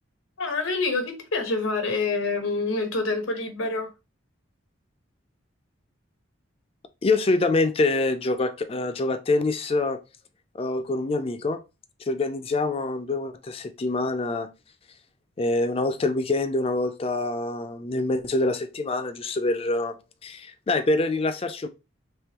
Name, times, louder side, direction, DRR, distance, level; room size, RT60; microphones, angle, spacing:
voice 1, 0.4-3.9, left 3 dB, 85° left, 1.0 m, -27 dB
voice 2, 7.0-10.0 10.5-11.6 12.1-14.5 15.4-20.0 20.2-21.7, left 2 dB, 30° left, 0.4 m, -25 dB
3.7 x 3.1 x 2.9 m
head